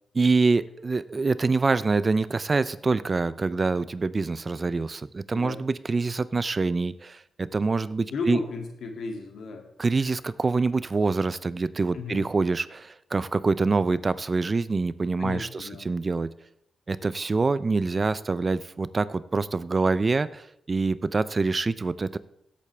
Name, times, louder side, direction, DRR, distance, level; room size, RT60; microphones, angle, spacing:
voice 1, 0.1-8.4 9.8-16.3 16.9-22.2, right 3 dB, 30° right, 16 dB, 0.4 m, -25 dB
voice 2, 8.1-9.7 11.9-12.2 15.2-15.9, left 3 dB, 75° left, 2 dB, 2.2 m, -34 dB
16.5 x 8.4 x 3.3 m, 0.81 s
cardioid pair, 100°, 0 cm